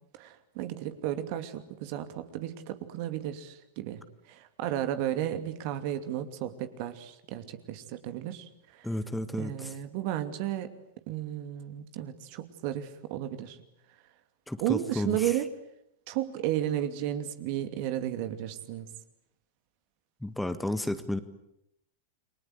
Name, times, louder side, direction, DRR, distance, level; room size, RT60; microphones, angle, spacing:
voice 1, 0.1-8.9 9.4-10.7 11.1-13.6 14.6-15.5 16.1-18.9, right 12 dB, 50° right, 9 dB, 2.6 m, -33 dB
voice 2, 8.8-9.7 14.5-15.4 20.2-21.2, left 1 dB, 5° left, 11 dB, 1.8 m, -32 dB
30.0 x 24.0 x 8.2 m, 0.79 s
figure-of-eight pair, 95°, 0 cm